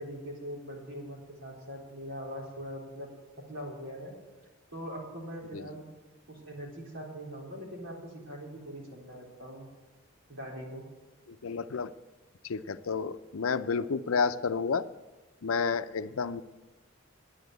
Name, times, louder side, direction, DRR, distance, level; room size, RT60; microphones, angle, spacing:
voice 1, 0.0-3.1 3.5-4.1 4.7-5.9 6.3-9.7 10.3-10.9, equal, 65° right, -2 dB, 4.1 m, -42 dB
voice 2, 11.4-11.9 12.4-14.8 15.4-16.4, left 5 dB, 80° left, 12 dB, 0.6 m, -30 dB
10.5 x 10.0 x 8.0 m, 1.2 s
head